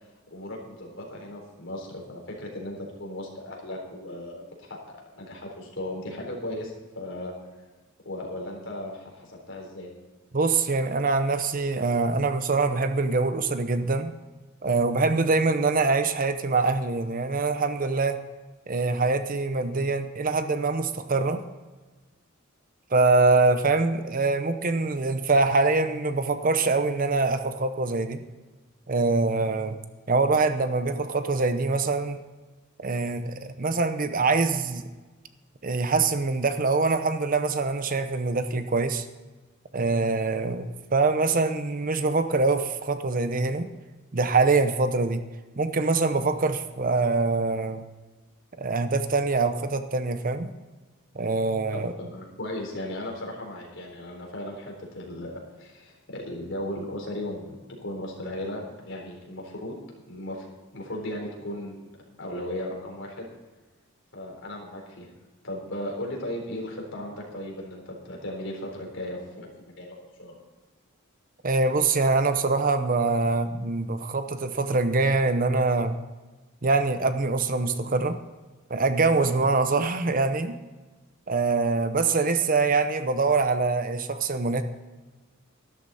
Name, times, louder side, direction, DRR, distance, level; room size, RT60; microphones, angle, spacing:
voice 1, 0.3-4.8 5.2-7.3 8.1-9.9 51.7-59.8 60.1-60.5 60.7-61.8 62.2-63.3 64.1-65.1 65.4-70.4, left 1 dB, 65° left, -1 dB, 3.9 m, -36 dB
voice 2, 10.3-14.1 14.6-18.2 18.7-21.4 22.9-28.2 28.9-29.8 30.1-32.2 32.8-34.9 35.6-39.1 39.7-43.7 44.1-45.2 45.6-47.8 48.6-50.6 51.2-51.9 71.4-76.0 76.6-78.2 78.7-80.5 81.3-84.6, right 3 dB, 40° right, 9 dB, 0.8 m, -24 dB
12.5 x 12.5 x 4.2 m, 1.2 s
head